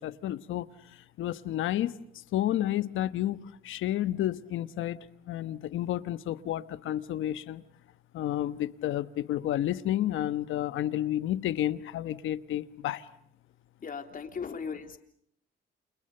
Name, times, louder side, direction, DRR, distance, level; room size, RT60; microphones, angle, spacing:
voice 1, 0.0-1.9 2.3-5.0 5.3-7.6 8.1-13.1, left 12 dB, 80° left, 1.2 m, -31 dB
voice 2, 13.8-15.0, left 6 dB, 45° left, 3.5 m, -37 dB
30.0 x 29.0 x 6.7 m
cardioid pair, 90°, 20 cm